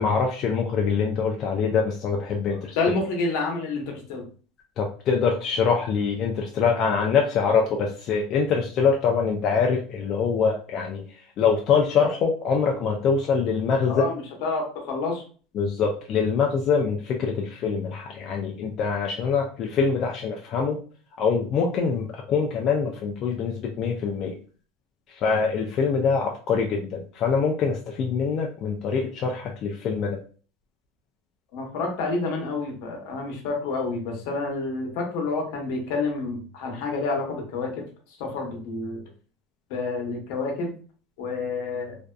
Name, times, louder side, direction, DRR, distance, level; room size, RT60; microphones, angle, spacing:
voice 1, 0.0-2.7 4.8-11.0 11.4-14.0 15.5-20.8 21.2-24.3 25.2-30.2, left 5 dB, 40° left, 1 dB, 0.3 m, -24 dB
voice 2, 2.8-4.2 13.9-15.2 31.5-37.8 38.2-39.0 39.7-40.7 41.2-42.0, left 3 dB, 65° left, 1 dB, 0.8 m, -28 dB
2.5 x 2.2 x 2.3 m, 0.40 s
supercardioid pair, 140°, 0 cm